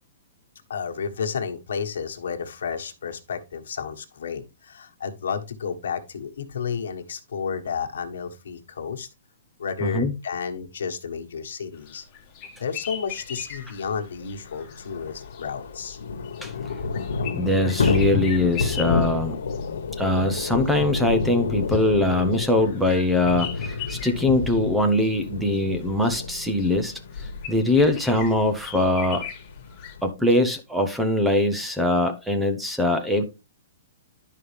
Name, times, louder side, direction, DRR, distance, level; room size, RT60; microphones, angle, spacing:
voice 1, 0.7-9.1 9.6-12.0 12.6-16.0, left 6 dB, 70° left, 1.5 m, -32 dB
voice 2, 9.8-10.1 16.4-16.5 17.3-19.4 20.0-27.0 27.5-29.2 30.0-33.3, left 1 dB, ahead, 0.6 m, -22 dB
sound 1, 11.7-29.9, left 9 dB, 20° left, 1.3 m, -41 dB
Thunder / Rain, 13.5-13.6 13.8-13.9 14.2-30.1, left 4 dB, 90° left, 1.3 m, -30 dB
11.0 x 5.4 x 3.4 m
hypercardioid pair, 175°, 0 cm